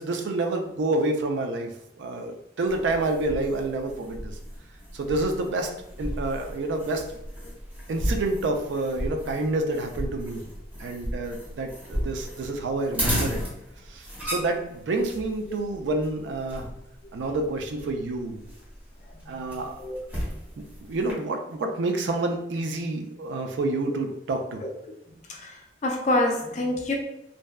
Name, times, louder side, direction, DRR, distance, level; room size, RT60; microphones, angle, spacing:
voice 1, 0.0-1.7 2.0-4.3 4.9-5.7 6.0-7.1 7.9-10.4 10.8-13.4 13.9-16.7 17.1-18.4 19.3-19.8 20.9-24.6, right 2 dB, 80° right, 4 dB, 0.4 m, -28 dB
sound 1, 2.7-21.1, equal, 10° right, 0.7 m, -35 dB
voice 2, 25.3-26.9, left 1 dB, 40° left, 1 dB, 0.4 m, -27 dB
2.5 x 2.1 x 2.2 m, 0.84 s
head